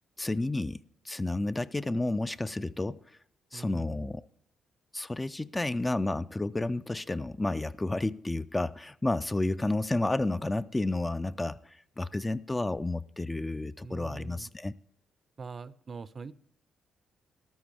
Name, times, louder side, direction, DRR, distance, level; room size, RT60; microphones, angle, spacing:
voice 1, 0.2-3.2 3.5-4.3 4.9-14.7, left 2 dB, 15° left, 0.3 m, -31 dB
voice 2, 3.5-4.0 13.8-14.5 15.4-16.3, right 5 dB, 40° right, 0.5 m, -43 dB
13.5 x 12.5 x 3.4 m
cardioid pair, 90°, 0 cm